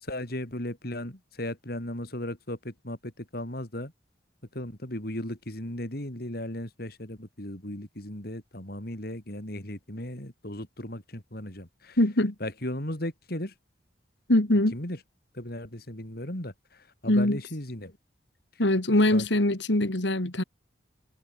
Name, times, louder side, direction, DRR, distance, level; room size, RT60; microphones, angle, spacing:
voice 1, 0.0-3.9 4.5-12.0 12.4-13.5 14.7-15.0 15.3-18.0 19.1-19.3, left 1 dB, 55° left, 4.4 m, -36 dB
voice 2, 12.0-12.3 14.3-14.7 17.1-17.4 18.6-20.4, left 1 dB, 75° left, 2.4 m, -22 dB
head